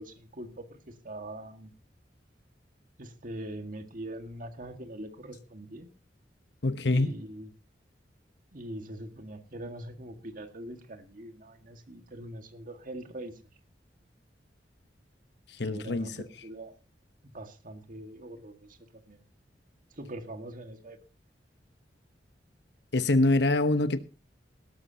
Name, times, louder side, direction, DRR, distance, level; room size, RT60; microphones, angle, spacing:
voice 1, 0.0-1.7 3.0-5.9 6.9-7.5 8.5-13.3 15.6-16.7 17.2-18.8 19.1-19.2 20.0-21.0, right 1 dB, 50° right, 1.8 m, -42 dB
voice 2, 6.6-7.2 15.5-16.2 22.9-24.0, left 2 dB, 70° left, 1.0 m, -25 dB
18.5 x 13.5 x 2.8 m
head